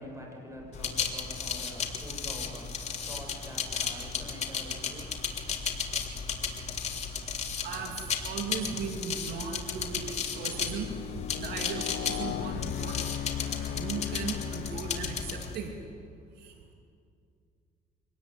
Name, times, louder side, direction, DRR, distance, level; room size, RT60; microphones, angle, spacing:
voice 1, 0.0-5.4, equal, 20° right, 0 dB, 7.8 m, -46 dB
sound 1, 0.7-15.6, left 6 dB, 40° left, 3.2 m, -35 dB
voice 2, 7.6-11.0 11.4-13.0 13.5-15.7 16.4-16.7, right 5 dB, 70° right, 2 dB, 2.9 m, -37 dB
sound 2, 8.0-8.3 8.9-15.8, left 10 dB, 65° left, 0.9 m, -38 dB
25.0 x 19.0 x 9.4 m, 2.3 s
cardioid pair, 110°, 17 cm